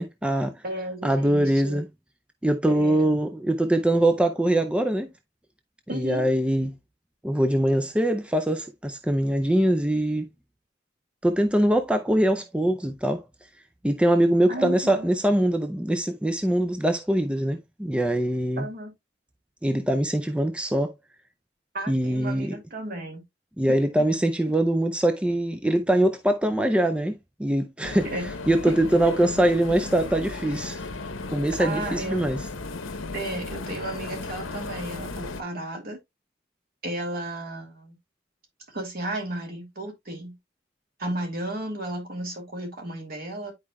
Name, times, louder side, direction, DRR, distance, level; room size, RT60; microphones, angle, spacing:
voice 1, 0.0-0.6 1.0-1.8 2.4-5.1 5.9-6.7 7.2-10.3 11.2-13.2 13.8-18.7 19.6-20.9 21.9-22.6 23.6-28.1 28.5-30.8 31.3-32.4, right 1 dB, 5° right, 0.4 m, -23 dB
voice 2, 0.6-1.8 2.7-3.1 5.9-6.3 14.5-15.1 18.6-18.9 21.7-23.2 23.7-23.8 28.1-28.3 28.7-28.8 31.6-32.2 33.1-36.0 36.8-38.0 38.7-40.4 41.0-43.5, right 1 dB, 50° right, 2.6 m, -33 dB
sound 1, 27.8-35.4, left 3 dB, 85° left, 1.0 m, -35 dB
10.5 x 4.7 x 2.3 m
head